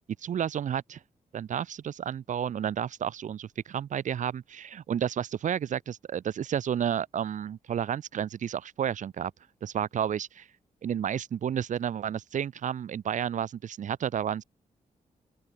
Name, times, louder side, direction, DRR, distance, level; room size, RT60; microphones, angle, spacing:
voice 1, 0.2-1.0 1.3-9.3 9.6-10.5 10.8-14.4, right 9 dB, 70° right, 3.2 m, -31 dB
open air
wide cardioid pair, 125°, 13 cm